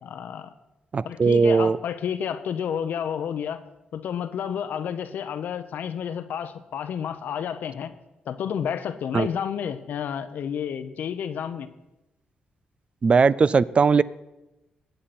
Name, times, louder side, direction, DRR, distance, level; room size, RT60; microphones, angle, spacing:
voice 1, 0.0-0.5 1.0-3.6 3.9-7.9 8.3-11.7, left 8 dB, 75° left, 11 dB, 0.8 m, -30 dB
voice 2, 0.9-1.8 9.1-9.3 13.0-14.0, right 5 dB, 40° right, 18 dB, 0.4 m, -19 dB
20.5 x 7.8 x 4.3 m, 0.98 s
cardioid pair, 85°, 3 cm